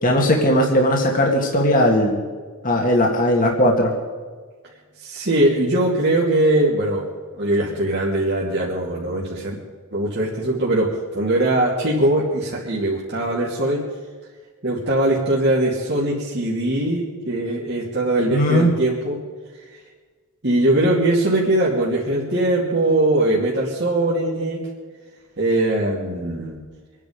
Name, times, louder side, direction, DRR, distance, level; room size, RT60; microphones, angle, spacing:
voice 1, 0.0-2.2 2.6-3.9 18.3-18.7, equal, 40° left, 0 dB, 2.0 m, -18 dB
voice 2, 5.0-7.1 7.3-9.5 9.9-13.8 14.6-19.2 20.4-24.6 25.4-26.6, right 1 dB, 50° right, -5 dB, 2.7 m, -21 dB
25.5 x 10.0 x 5.2 m, 1.5 s
head